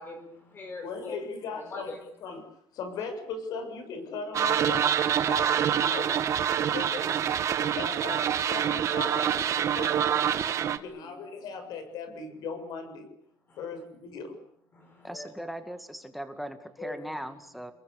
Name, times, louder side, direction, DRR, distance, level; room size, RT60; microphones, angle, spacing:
voice 1, 0.0-1.2 1.5-2.0 7.5-7.8 10.6-11.1 13.5-13.6 14.7-15.3 16.8-17.0, left 3 dB, 30° left, 5 dB, 4.7 m, -43 dB
voice 2, 0.8-2.5 2.7-4.9 5.3-6.1 6.7-7.2 7.8-10.3 10.7-13.1 13.6-14.4, left 5 dB, 65° left, 8 dB, 7.5 m, -38 dB
sound 1, 4.3-10.8, right 9 dB, 45° right, 1.6 m, -26 dB
voice 3, 15.0-17.7, equal, ahead, 7 dB, 2.2 m, -39 dB
29.0 x 21.5 x 8.5 m, 0.72 s
cardioid pair, 155°, 7 cm